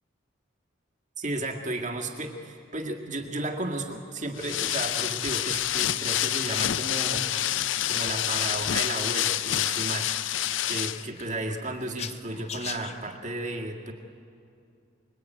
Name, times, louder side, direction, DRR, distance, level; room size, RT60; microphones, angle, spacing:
voice 1, 1.2-7.3 7.9-10.1 10.7-13.9, right 2 dB, 40° right, 2 dB, 2.0 m, -33 dB
sound 1, 4.1-13.2, left 7 dB, 35° left, 0.6 m, -46 dB
sound 2, 4.4-11.1, left 12 dB, 85° left, 0.5 m, -27 dB
sound 3, 5.6-5.8 6.1-6.7 7.1-7.5 8.0-8.4, right 1 dB, 90° right, 2.1 m, -54 dB
24.5 x 22.0 x 9.3 m, 2.5 s
head